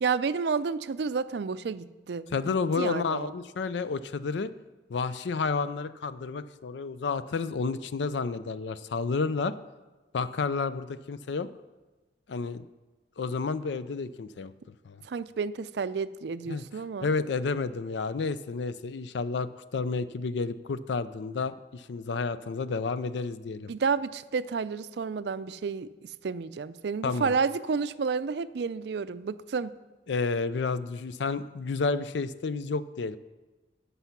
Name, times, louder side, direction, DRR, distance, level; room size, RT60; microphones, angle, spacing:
voice 1, 0.0-3.3 15.0-17.1 23.7-25.9 26.2-29.7, right 5 dB, 65° right, 15 dB, 0.4 m, -30 dB
voice 2, 2.3-4.5 4.9-9.5 10.1-11.5 12.3-12.7 13.2-15.0 16.5-16.6 17.0-23.7 27.0-27.4 30.1-33.2, left 4 dB, 75° left, 14 dB, 0.4 m, -31 dB
14.0 x 5.6 x 5.8 m, 1.2 s
head